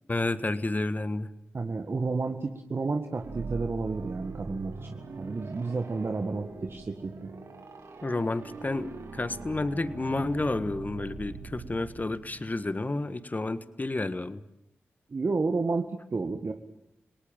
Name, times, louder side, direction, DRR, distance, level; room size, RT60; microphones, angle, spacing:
voice 1, 0.1-1.3 8.0-14.4, left 2 dB, 35° left, 13 dB, 1.5 m, -30 dB
voice 2, 1.5-7.3 15.1-16.5, right 3 dB, 50° right, 5 dB, 1.7 m, -31 dB
sound 1, 3.1-12.9, right 4 dB, 75° right, 3.4 m, -42 dB
28.5 x 18.5 x 9.0 m, 0.85 s
cardioid pair, 40°, 5 cm